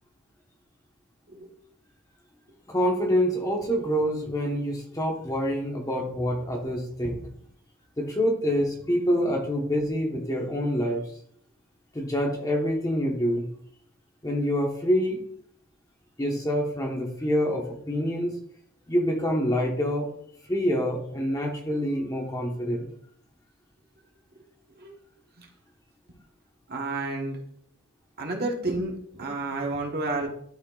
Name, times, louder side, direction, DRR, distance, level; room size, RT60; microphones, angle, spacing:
voice 1, 2.7-7.2 8.0-11.0 11.9-13.5 14.2-15.2 16.2-18.3 18.9-20.1 20.5-22.9, equal, 15° left, 0 dB, 1.1 m, -26 dB
voice 2, 26.7-27.4 28.2-30.3, right 2 dB, 50° right, 1 dB, 1.2 m, -30 dB
11.5 x 4.3 x 2.4 m, 0.65 s
head